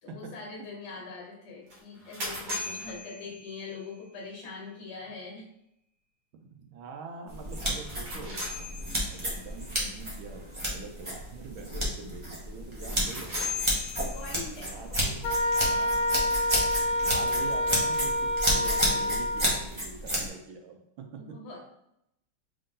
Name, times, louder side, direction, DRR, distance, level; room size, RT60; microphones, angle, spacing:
voice 1, 0.0-5.5 14.1-15.4 21.2-21.7, left 4 dB, 60° left, -2 dB, 1.4 m, -43 dB
sound 1, 1.7-3.9 7.7-9.4 12.8-14.6, left 3 dB, 60° right, 1.7 m, -38 dB
voice 2, 2.8-3.3 6.4-8.6 9.1-13.7 14.6-15.3 15.6-16.1 17.0-21.4, right 4 dB, 75° right, 4 dB, 1.4 m, -44 dB
sound 2, 7.3-20.3, equal, 40° right, 0.4 m, -32 dB
Wind instrument woodwind instrument, 15.2-19.6, equal, 80° left, 1.4 m, -27 dB
3.7 x 2.6 x 3.6 m, 0.79 s
omnidirectional pair, 2.3 m